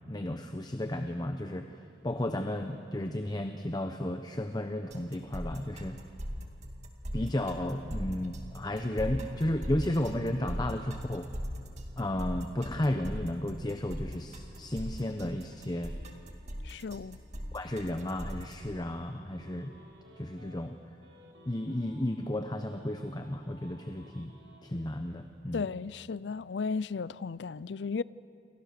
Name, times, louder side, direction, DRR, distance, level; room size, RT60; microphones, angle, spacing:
voice 1, 0.1-1.7 2.0-6.0 7.1-11.3 12.0-15.9 17.5-19.7 20.2-20.7 21.5-25.6, left 1 dB, 25° left, 0.9 m, -33 dB
sound 1, 4.9-18.5, equal, 40° right, 2.3 m, -39 dB
voice 2, 16.6-17.2 25.5-28.0, left 5 dB, 75° left, 0.5 m, -34 dB
sound 2, 19.3-20.7 21.0-24.6, equal, 85° right, 4.3 m, -56 dB
28.5 x 24.0 x 6.7 m
head